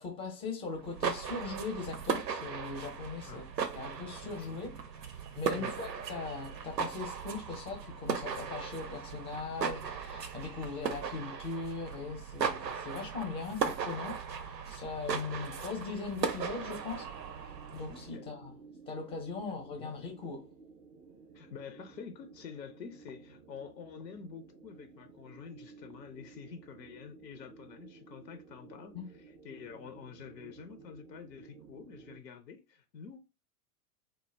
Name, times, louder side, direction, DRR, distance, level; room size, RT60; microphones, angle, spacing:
voice 1, 0.0-3.4 3.7-17.1 17.7-18.6 18.9-20.5 28.9-29.0, left 4 dB, 10° left, 0.5 m, -40 dB
sound 1, 0.8-18.1, right 6 dB, 90° right, 0.5 m, -37 dB
voice 2, 3.2-3.6 4.2-4.5 5.5-5.9 17.9-18.3 19.8-19.9 21.3-29.0 29.4-33.2, left 6 dB, 85° left, 0.6 m, -48 dB
sound 2, 16.1-32.2, right 4 dB, 35° right, 0.5 m, -55 dB
2.1 x 2.1 x 3.2 m
figure-of-eight pair, 95°, 48 cm